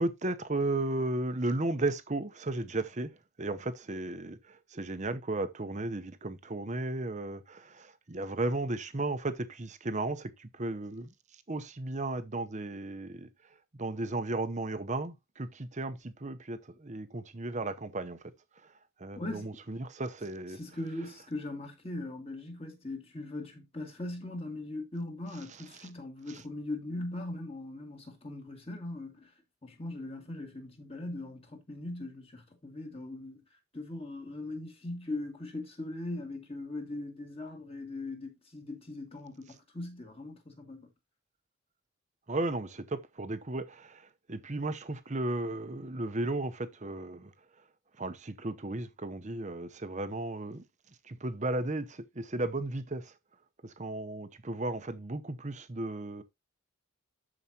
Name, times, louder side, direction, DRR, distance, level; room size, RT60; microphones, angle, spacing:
voice 1, 0.0-3.1 3.4-11.1 11.5-13.3 13.8-18.3 18.6-18.7 19.0-20.6 25.8-25.9 26.3-26.4 42.3-47.3 48.0-50.6 51.0-53.1 53.6-56.2, right 2 dB, 30° right, 0.8 m, -35 dB
voice 2, 19.2-19.5 20.5-29.3 29.6-33.4 33.7-40.9, left 2 dB, 25° left, 2.1 m, -40 dB
12.5 x 4.9 x 2.8 m
head